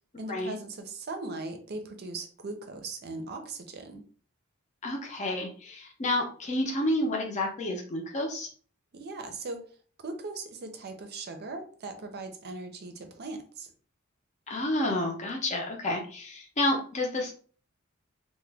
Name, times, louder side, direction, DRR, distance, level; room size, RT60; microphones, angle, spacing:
voice 1, 0.2-4.0 8.9-9.7 10.0-13.7, right 3 dB, 50° right, 6 dB, 0.6 m, -39 dB
voice 2, 4.8-8.5 14.5-17.3, left 1 dB, 35° left, 1 dB, 0.6 m, -30 dB
2.9 x 2.1 x 3.3 m, 0.43 s
head